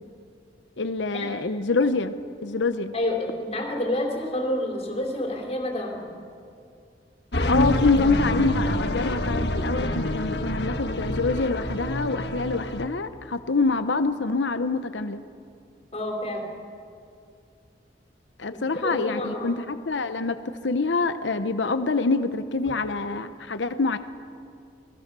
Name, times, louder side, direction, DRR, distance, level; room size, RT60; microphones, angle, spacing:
voice 1, 0.8-2.1 2.4-2.9 7.4-15.2 18.4-20.4 20.6-24.0, left 3 dB, 90° left, 10 dB, 0.9 m, -26 dB
voice 2, 2.9-6.1 15.9-16.5 18.5-19.5, left 1 dB, 35° left, 1 dB, 3.8 m, -29 dB
sound 1, 7.3-12.9, left 1 dB, 65° left, 1.6 m, -26 dB
28.0 x 20.0 x 6.9 m, 2.4 s
head